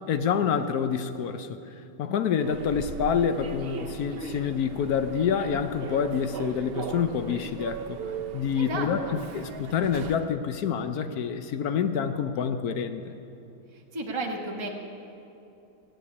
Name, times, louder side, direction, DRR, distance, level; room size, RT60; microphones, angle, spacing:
voice 1, 0.0-8.0 8.3-9.0 9.3-13.1, left 7 dB, 70° left, 9 dB, 1.1 m, -27 dB
Human voice / Subway metro underground, 2.4-10.4, right 6 dB, 70° right, 0.5 m, -38 dB
voice 2, 8.5-9.2 13.7-14.7, right 2 dB, 20° right, 0 dB, 1.2 m, -33 dB
15.5 x 7.7 x 9.7 m, 2.8 s
omnidirectional pair, 1.9 m